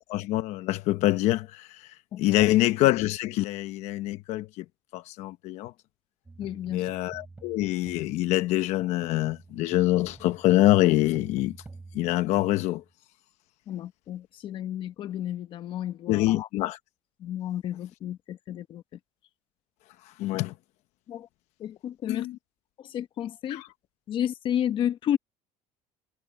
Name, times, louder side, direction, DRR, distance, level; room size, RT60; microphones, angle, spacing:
voice 1, 0.0-4.6 4.9-5.7 6.7-11.6 11.9-12.8 16.1-16.8 20.2-20.5 22.1-22.4 23.5-23.7, left 16 dB, 60° left, 0.9 m, -25 dB
voice 2, 2.1-2.5 6.4-6.9 13.7-16.5 17.2-18.8 21.1-21.3 21.6-22.3 22.8-23.6 24.1-25.2, left 10 dB, 40° left, 1.1 m, -32 dB
sound 1, 6.3-12.9, right 3 dB, 10° right, 3.1 m, -48 dB
cardioid pair, 160°, 13 cm